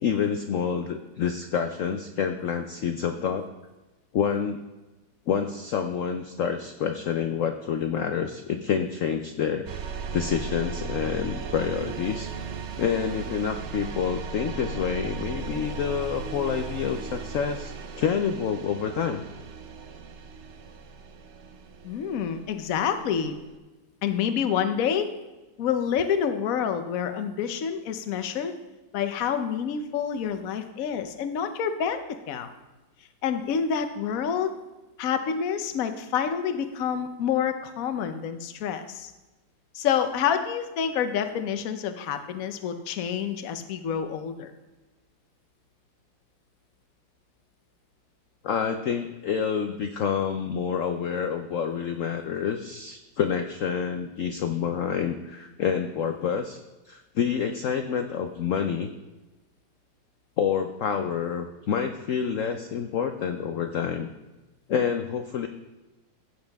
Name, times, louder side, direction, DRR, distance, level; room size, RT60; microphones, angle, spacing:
voice 1, 0.0-3.4 4.1-4.6 5.3-9.7 10.1-12.3 12.8-19.2 48.4-56.6 56.8-58.9 60.4-64.1 64.7-65.5, left 7 dB, 85° left, 6 dB, 0.7 m, -28 dB
sound 1, 9.7-23.6, right 5 dB, 70° right, 0.6 m, -37 dB
voice 2, 21.8-23.4 24.0-25.1 25.6-28.5 28.9-32.5 33.2-34.5 35.0-39.1 39.7-44.5, left 8 dB, 55° left, 8 dB, 1.0 m, -28 dB
15.5 x 7.2 x 3.5 m, 1.1 s
omnidirectional pair, 2.1 m